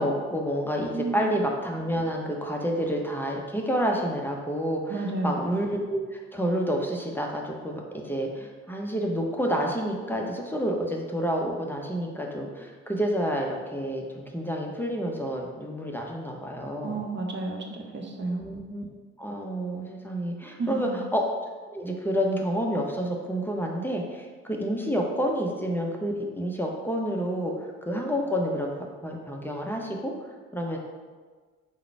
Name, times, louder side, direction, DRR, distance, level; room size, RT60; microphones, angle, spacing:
voice 1, 0.0-17.0 18.3-18.9 19.2-21.3 21.7-28.7 29.0-30.1 30.5-30.8, equal, 5° left, 0 dB, 0.6 m, -29 dB
voice 2, 0.9-1.3 4.9-5.5 16.8-18.4 20.6-21.0, right 3 dB, 30° right, 2 dB, 0.7 m, -31 dB
3.8 x 2.1 x 4.4 m, 1.4 s
hypercardioid pair, 50°, 36 cm